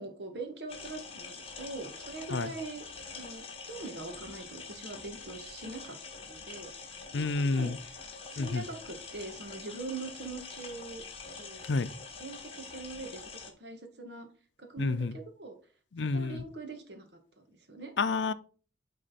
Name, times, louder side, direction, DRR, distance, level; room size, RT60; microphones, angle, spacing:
voice 1, 0.0-2.8 3.1-6.0 6.3-7.9 8.3-11.0 11.4-11.6 12.2-13.3 13.6-14.3 14.6-15.6 16.1-17.1 17.4-17.9, right 3 dB, 70° right, 1.6 m, -42 dB
sound 1, 0.7-13.5, left 4 dB, 30° left, 1.1 m, -45 dB
voice 2, 7.1-7.8 8.4-8.6 11.7-11.9 14.8-15.2 15.9-16.4 18.0-18.3, left 3 dB, 80° left, 0.5 m, -29 dB
9.1 x 3.9 x 4.1 m
head